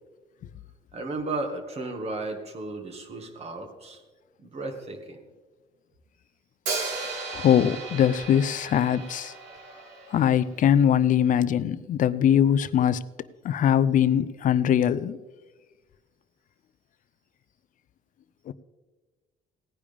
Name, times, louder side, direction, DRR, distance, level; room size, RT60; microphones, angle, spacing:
voice 1, 0.9-4.0 4.4-5.2, right 2 dB, 40° right, 4 dB, 2.0 m, -34 dB
Hi-hat, 6.7-10.6, right 4 dB, 85° right, 3.3 m, -35 dB
voice 2, 7.3-9.3 10.1-13.0 13.4-15.2 18.5-18.6, left 9 dB, 50° left, 16 dB, 0.6 m, -22 dB
17.5 x 9.9 x 3.6 m, 1.3 s
cardioid pair, 110°, 17 cm